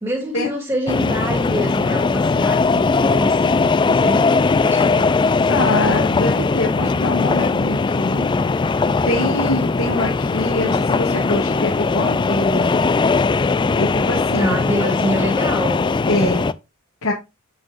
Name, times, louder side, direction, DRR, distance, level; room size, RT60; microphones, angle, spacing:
voice 1, 0.0-5.7 14.4-15.8, equal, 15° right, 2.2 m, -26 dB
sound 1, 0.9-16.5, left 4 dB, 20° left, 0.3 m, -19 dB
voice 2, 5.5-8.3 9.1-12.8 13.8-14.6 16.1-16.5 17.0-17.1, left 1 dB, 65° left, 2.0 m, -23 dB
8.0 x 7.2 x 2.5 m
head